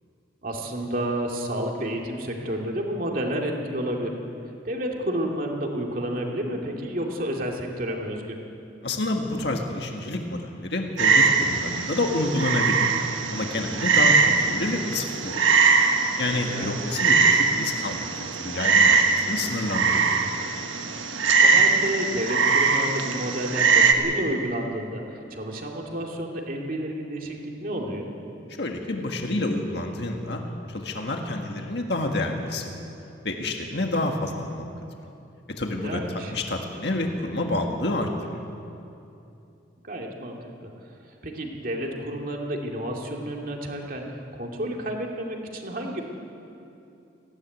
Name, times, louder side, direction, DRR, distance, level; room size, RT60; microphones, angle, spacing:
voice 1, 0.4-4.1 4.6-8.4 16.3-16.8 21.4-27.4 27.6-28.1 35.8-36.3 39.8-40.7 41.2-44.0 44.4-46.0, right 1 dB, 45° right, 0 dB, 2.5 m, -30 dB
voice 2, 8.8-12.9 13.3-15.4 16.2-20.2 28.6-30.4 30.7-32.7 33.2-34.6 35.6-38.4, left 2 dB, 60° left, 2 dB, 1.7 m, -28 dB
Frog, 11.0-23.9, right 4 dB, 80° right, 1.4 m, -21 dB
19.0 x 16.0 x 9.3 m, 2.7 s
head